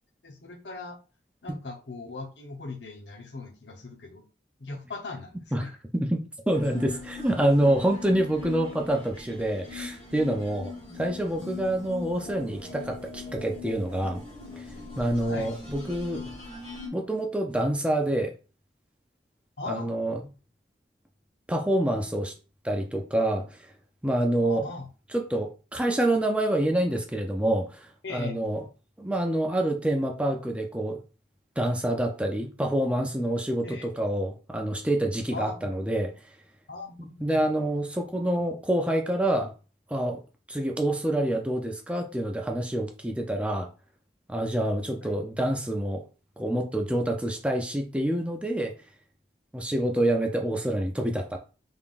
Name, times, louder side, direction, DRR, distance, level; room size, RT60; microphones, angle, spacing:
voice 1, 0.2-1.0 1.4-4.2 4.6-5.7 15.3-15.5 19.6-19.9 24.4-24.9 28.0-28.6 33.6-33.9 35.3-35.7 36.7-37.4 45.0-45.2, left 3 dB, 90° left, 0.9 m, -39 dB
voice 2, 5.9-14.2 14.6-14.7 15.0-16.3 16.9-18.4 19.7-20.2 21.5-22.3 22.6-23.6 24.0-24.6 25.1-28.6 29.0-31.0 31.6-36.1 37.0-39.5 39.9-40.2 40.5-43.7 44.3-46.0 46.4-48.7 49.5-51.4, right 1 dB, 5° right, 0.5 m, -27 dB
sound 1, 6.5-16.9, left 4 dB, 30° left, 1.4 m, -41 dB
3.7 x 3.5 x 2.5 m
head